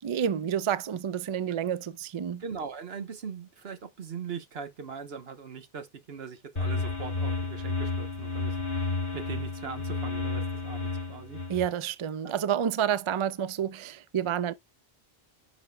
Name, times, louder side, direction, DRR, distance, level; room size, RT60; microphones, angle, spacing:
voice 1, 0.0-2.4 11.5-14.5, right 9 dB, 55° right, 0.3 m, -29 dB
voice 2, 2.4-11.4 12.2-12.3, right 6 dB, 75° right, 1.3 m, -40 dB
sound 1, 6.6-11.7, left 3 dB, 55° left, 3.0 m, -31 dB
10.5 x 4.8 x 2.2 m
omnidirectional pair, 1.0 m